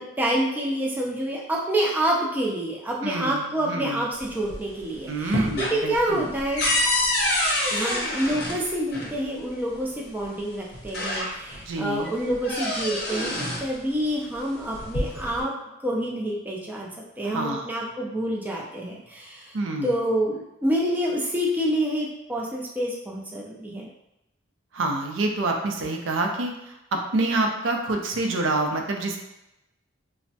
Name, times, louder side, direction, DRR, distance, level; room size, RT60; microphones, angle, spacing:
voice 1, 0.0-6.7 7.7-13.3 13.6-15.5 15.8-16.9 17.2-19.6 19.8-23.9, right 1 dB, 10° right, -3 dB, 0.3 m, -27 dB
voice 2, 3.0-4.0 5.1-6.2 11.7-12.1 17.2-17.7 19.5-20.0 24.7-29.2, right 2 dB, 75° right, 2 dB, 0.5 m, -27 dB
sound 1, 4.2-4.8 5.1-9.1 10.2-10.3 10.7-11.7 12.0-13.7 14.6-15.4, left 1 dB, 50° left, 0.6 m, -27 dB
3.3 x 2.0 x 2.7 m, 0.89 s
head